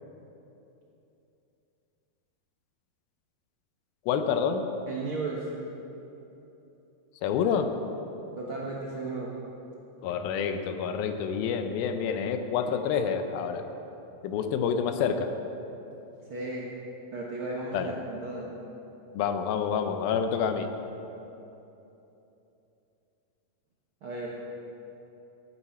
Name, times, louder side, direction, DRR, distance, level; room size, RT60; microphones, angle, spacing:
voice 1, 4.1-4.7 7.2-7.8 10.0-13.7 14.2-15.3 17.7-17.9 19.1-20.7, left 7 dB, 85° left, 7 dB, 2.6 m, -28 dB
voice 2, 4.9-5.5 8.4-9.3 16.3-16.7 17.1-18.5 24.0-24.4, right 3 dB, 75° right, -4 dB, 1.2 m, -35 dB
18.5 x 9.1 x 4.3 m, 3.0 s
omnidirectional pair, 4.2 m